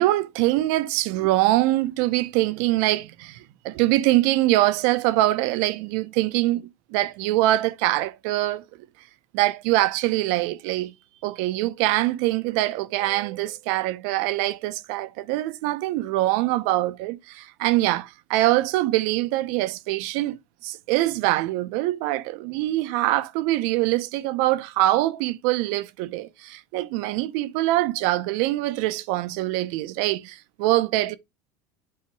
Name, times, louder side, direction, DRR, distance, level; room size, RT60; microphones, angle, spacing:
voice 1, 0.0-8.6 9.3-10.9 11.2-31.2, right 17 dB, 70° right, 0.7 m, -24 dB
8.6 x 2.9 x 4.6 m
supercardioid pair, 130°, 8 cm